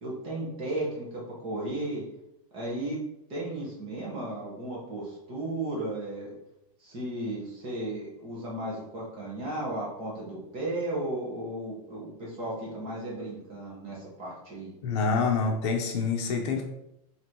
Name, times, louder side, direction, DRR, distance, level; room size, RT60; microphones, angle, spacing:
voice 1, 0.0-2.0 2.5-3.0 3.3-6.3 6.8-14.7, right 1 dB, 30° right, -4 dB, 1.4 m, -35 dB
voice 2, 14.8-16.6, left 4 dB, 50° left, 2 dB, 0.8 m, -26 dB
4.8 x 3.2 x 3.0 m, 0.85 s
supercardioid pair, 170°, 19 cm